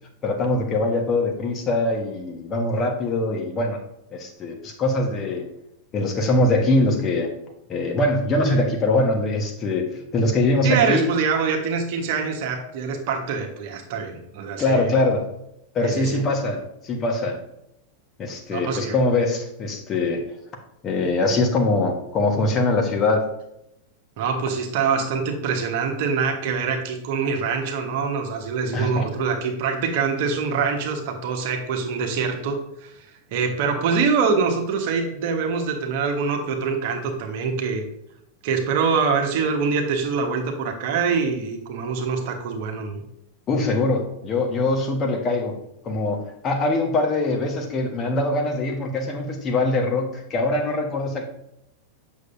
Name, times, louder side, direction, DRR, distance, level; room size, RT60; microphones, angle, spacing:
voice 1, 0.2-3.8 4.1-5.5 5.9-7.3 7.7-11.1 14.6-15.3 15.7-17.4 18.2-20.3 20.8-23.3 28.7-29.1 43.5-45.6 45.8-51.2, left 2 dB, 30° left, 3 dB, 1.3 m, -23 dB
voice 2, 10.6-14.9 15.8-16.2 18.5-19.0 24.2-32.9 33.3-37.8 38.4-43.0, right 5 dB, 50° right, 3 dB, 1.3 m, -24 dB
8.1 x 6.4 x 2.6 m, 0.81 s
figure-of-eight pair, 90°, 0 cm